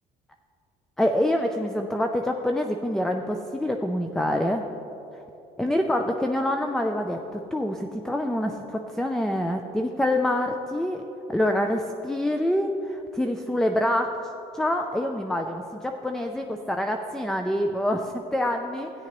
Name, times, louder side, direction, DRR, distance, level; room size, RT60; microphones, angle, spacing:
voice 1, 1.0-4.7 5.6-11.0 11.3-14.1 14.5-18.9, left 1 dB, 5° left, 4 dB, 0.4 m, -26 dB
13.5 x 9.7 x 3.0 m, 2.9 s
cardioid pair, 110°, 17 cm